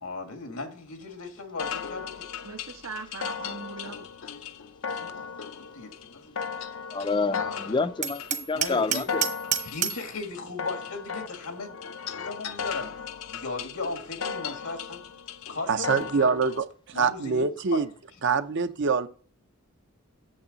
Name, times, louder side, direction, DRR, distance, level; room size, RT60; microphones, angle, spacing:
voice 1, 0.0-2.3 4.9-6.3 7.3-7.9 8.5-9.0 9.6-11.8 12.1-15.0 15.5-16.3 16.9-17.4 17.7-17.8, left 3 dB, 90° left, 1.8 m, -37 dB
sound 1, 1.6-16.6, left 6 dB, 65° left, 0.6 m, -36 dB
voice 2, 2.4-4.1, right 4 dB, 85° right, 1.4 m, -40 dB
voice 3, 6.9-9.2, left 3 dB, 20° left, 0.4 m, -28 dB
Hammer, 8.0-10.1, right 8 dB, 35° right, 0.9 m, -29 dB
voice 4, 15.7-17.9 18.2-19.1, right 5 dB, 60° right, 0.7 m, -25 dB
8.7 x 7.2 x 4.0 m
head